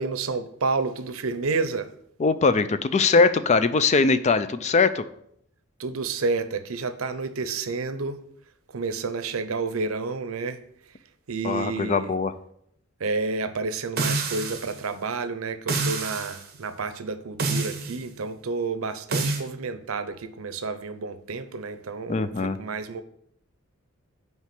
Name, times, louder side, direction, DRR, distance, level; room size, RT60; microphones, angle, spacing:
voice 1, 0.0-1.9 5.8-8.2 8.7-10.6 11.3-12.1 13.0-23.0, right 4 dB, 85° right, 0.7 m, -30 dB
voice 2, 2.2-5.0 11.4-12.3 22.1-22.6, left 4 dB, 35° left, 0.4 m, -21 dB
sound 1, 14.0-14.8 15.7-16.4 17.4-18.0 19.1-19.4, right 3 dB, 50° right, 1.2 m, -27 dB
5.9 x 4.6 x 5.9 m
head